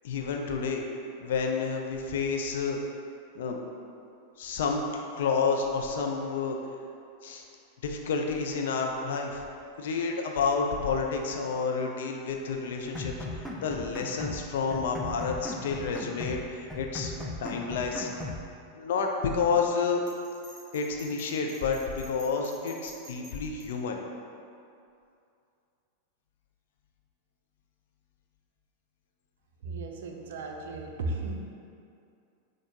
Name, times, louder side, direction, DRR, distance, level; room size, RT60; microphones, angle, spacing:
voice 1, 0.0-0.8 1.2-2.8 3.4-3.6 4.4-6.6 7.2-7.4 7.8-9.4 9.8-17.1 17.4-18.1 18.7-20.0 20.7-24.0, left 5 dB, 55° left, 2 dB, 0.4 m, -30 dB
sound 1, 13.0-14.4 14.7-16.4 16.7-18.4, left 2 dB, 5° left, 0.5 m, -37 dB
Bell, 20.1-23.7, right 1 dB, 35° right, 1.2 m, -50 dB
voice 2, 29.6-31.5, right 2 dB, 55° right, 2 dB, 0.4 m, -35 dB
6.1 x 2.5 x 2.8 m, 2.5 s
figure-of-eight pair, 90°, 0 cm